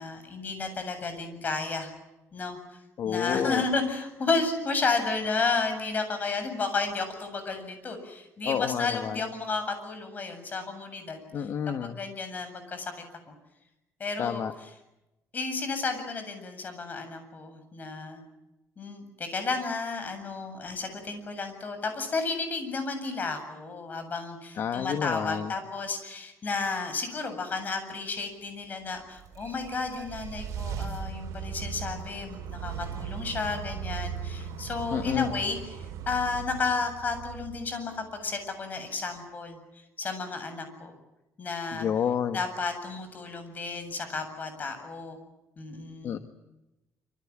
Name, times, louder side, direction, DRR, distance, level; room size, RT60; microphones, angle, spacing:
voice 1, 0.0-1.9 2.3-2.8 3.0-12.9 14.0-14.7 15.3-18.2 18.8-35.8 36.1-40.9 41.4-41.9 42.3-45.2 45.6-46.2, left 4 dB, 30° left, 8 dB, 7.8 m, -32 dB
voice 2, 3.0-3.6 8.4-9.2 11.3-12.0 14.2-14.5 24.6-25.5 34.9-35.3 41.7-42.4 46.0-46.2, left 8 dB, 55° left, 8 dB, 1.6 m, -29 dB
sound 1, 29.0-38.2, right 7 dB, 80° right, 4.7 m, -38 dB
27.0 x 26.5 x 7.5 m, 0.96 s
cardioid pair, 145°, 5 cm